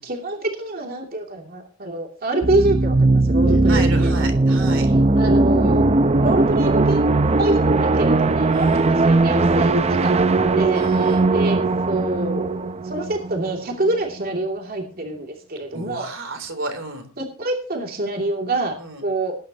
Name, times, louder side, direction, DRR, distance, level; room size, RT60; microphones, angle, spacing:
voice 1, 0.0-4.2 5.1-7.1 7.4-10.1 10.5-11.6 11.9-16.1 17.2-18.7 19.0-19.4, right 2 dB, 45° right, 2 dB, 2.7 m, -26 dB
sound 1, 2.4-14.0, right 2 dB, 30° right, 0.6 m, -18 dB
voice 2, 3.6-4.9 8.5-8.9 10.7-11.3 15.7-17.1 18.8-19.1, right 3 dB, 65° right, 7 dB, 3.6 m, -32 dB
19.5 x 10.5 x 2.9 m, 0.37 s
head